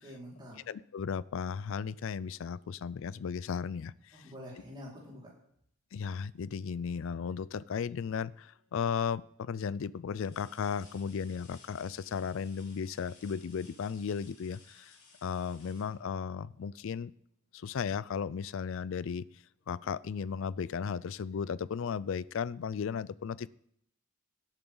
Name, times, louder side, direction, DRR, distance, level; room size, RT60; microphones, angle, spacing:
voice 1, 0.0-0.6 4.1-5.3, equal, 25° right, -5 dB, 4.8 m, -47 dB
voice 2, 0.7-4.3 5.9-15.0 15.2-17.1 17.5-19.3 19.7-23.5, left 6 dB, 70° left, 20 dB, 0.4 m, -35 dB
sound 1, 8.3-8.8 9.4-9.5 10.1-16.8 18.6-18.7 19.2-20.2 21.5-21.6, left 4 dB, 90° left, 5.1 m, -60 dB
17.5 x 9.0 x 3.9 m, 0.70 s
head